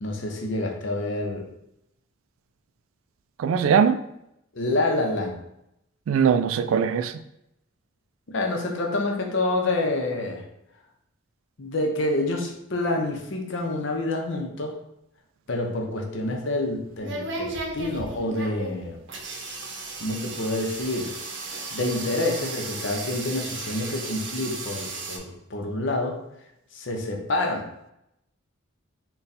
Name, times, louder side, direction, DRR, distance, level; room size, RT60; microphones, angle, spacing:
voice 1, 0.0-1.4 4.5-5.4 8.3-10.4 11.6-14.7 15.5-19.0 20.0-21.1 21.7-26.2 26.7-27.7, left 2 dB, 65° left, 0.7 m, -27 dB
voice 2, 3.4-4.0 6.1-7.1, right 7 dB, 80° right, 0.3 m, -20 dB
sound 1, 16.2-25.2, right 3 dB, 60° right, 0.7 m, -35 dB
4.0 x 2.3 x 4.0 m
head